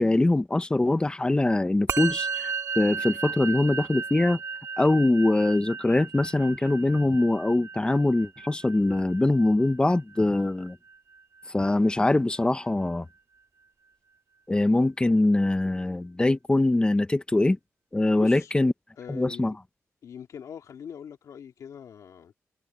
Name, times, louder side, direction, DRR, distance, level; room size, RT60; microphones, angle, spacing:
voice 1, 0.0-4.4 4.8-10.8 11.5-13.0 14.5-17.6 17.9-18.7 19.1-19.5, left 2 dB, 15° left, 1.2 m, -23 dB
Musical instrument, 1.9-11.4, right 5 dB, 55° right, 3.7 m, -35 dB
voice 2, 18.1-18.5 19.0-19.5 20.0-22.4, left 8 dB, 80° left, 2.4 m, -42 dB
cardioid pair, 95°, 6 cm